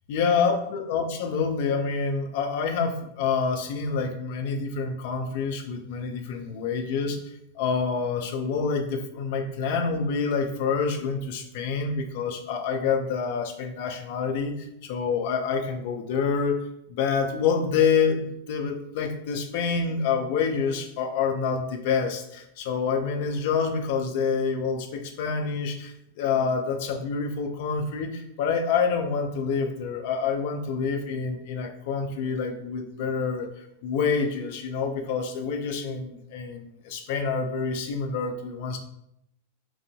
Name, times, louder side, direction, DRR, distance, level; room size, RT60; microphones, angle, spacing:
voice 1, 0.1-7.2 7.6-16.6 16.9-38.8, left 5 dB, 50° left, 5 dB, 0.3 m, -27 dB
2.6 x 2.5 x 2.2 m, 0.79 s
figure-of-eight pair, 90°, 0 cm